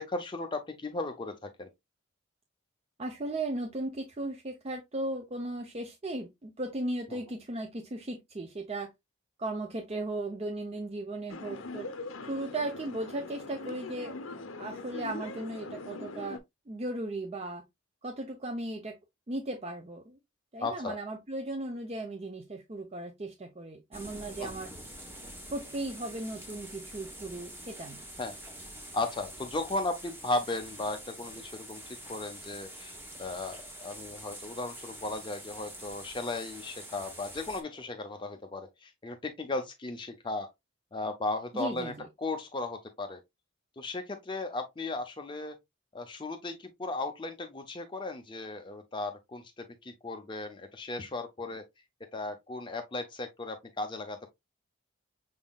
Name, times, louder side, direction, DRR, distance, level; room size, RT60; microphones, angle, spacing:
voice 1, 0.0-1.7 7.1-7.2 20.6-21.0 24.4-24.5 28.2-28.3 28.9-40.5 40.9-43.2 43.8-45.5 45.9-51.6 52.1-54.3, left 2 dB, 25° left, 0.5 m, -36 dB
voice 2, 3.0-8.9 9.4-11.9 12.2-14.1 14.5-16.4 16.7-17.6 18.0-19.0 19.3-20.2 20.5-24.7 25.5-28.0 41.5-42.1, right 2 dB, 30° right, 0.6 m, -36 dB
sound 1, 11.3-16.4, left 3 dB, 80° left, 0.7 m, -41 dB
sound 2, 23.9-37.6, right 1 dB, 10° right, 1.0 m, -46 dB
6.1 x 3.6 x 2.3 m
head